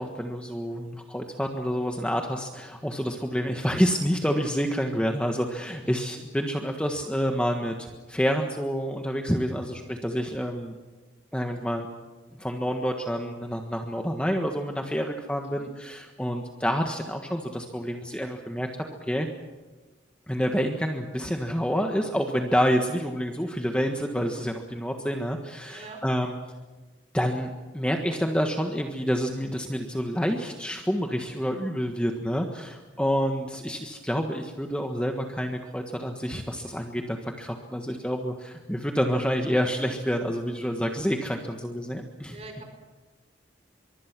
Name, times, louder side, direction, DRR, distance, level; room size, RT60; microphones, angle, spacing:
voice 1, 0.0-10.8 11.3-11.9 12.4-19.3 20.3-26.3 27.1-42.4, equal, 5° left, 3 dB, 1.5 m, -28 dB
voice 2, 5.6-6.0 15.4-15.7 25.7-26.0 42.3-42.7, right 3 dB, 35° right, 5 dB, 4.9 m, -46 dB
24.0 x 23.5 x 6.1 m, 1.3 s
head